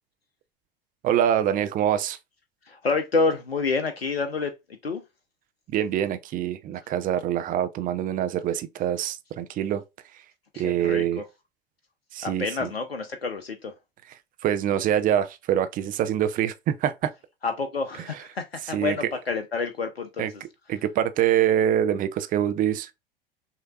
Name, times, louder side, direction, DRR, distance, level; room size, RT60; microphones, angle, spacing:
voice 1, 1.0-2.2 5.7-9.8 10.1-10.2 10.6-11.2 12.1-12.7 14.4-17.1 18.7-19.0 20.2-20.3 20.7-22.9, right 10 dB, 30° right, 0.6 m, -25 dB
voice 2, 2.6-4.5 4.8-5.0 10.5-11.2 12.2-13.7 17.4-20.3, left 4 dB, 85° left, 0.6 m, -28 dB
6.3 x 2.8 x 2.3 m
figure-of-eight pair, 80°, 30 cm